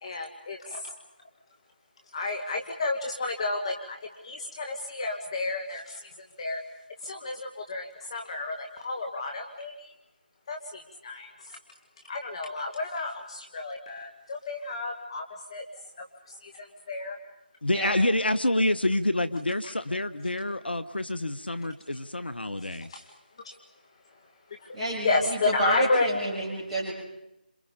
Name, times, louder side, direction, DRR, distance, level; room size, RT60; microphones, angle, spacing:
voice 1, 0.0-0.9 2.1-6.1 6.4-6.6 7.0-9.9 10.5-11.6 12.0-15.2 15.5-15.6 16.0-17.2 22.9-23.1 23.4-23.5 24.6-24.8 25.0-26.1, left 3 dB, 35° left, 3 dB, 1.8 m, -31 dB
voice 2, 17.6-22.9, left 1 dB, 80° left, 12 dB, 1.3 m, -27 dB
voice 3, 24.7-26.9, right 1 dB, 5° right, -8 dB, 7.9 m, -30 dB
29.0 x 27.0 x 5.3 m, 0.87 s
figure-of-eight pair, 160°, 5 cm